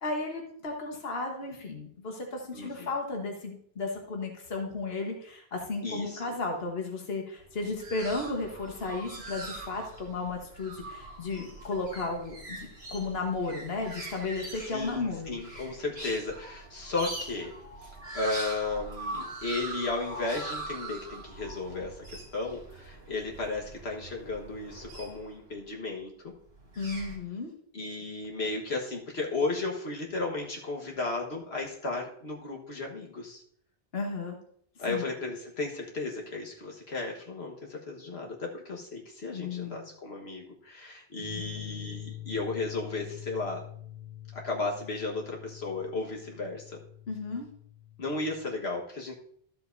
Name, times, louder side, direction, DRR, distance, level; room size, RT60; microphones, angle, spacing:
voice 1, 0.0-15.3 26.8-27.5 33.9-34.4 34.9-35.0 39.3-39.8 41.3-41.4 47.1-47.5, left 3 dB, 75° left, 1 dB, 1.5 m, -34 dB
voice 2, 2.5-2.9 5.8-6.2 14.7-17.5 17.8-26.3 27.7-33.4 34.8-43.6 44.3-46.8 48.0-49.1, left 3 dB, 90° left, -1 dB, 1.7 m, -34 dB
sound 1, 7.4-25.6 26.5-27.2, right 2 dB, 80° right, 2.8 m, -42 dB
sound 2, 41.2-48.5, left 12 dB, 20° left, 1.7 m, -45 dB
13.0 x 7.6 x 2.6 m, 0.63 s
omnidirectional pair, 1.0 m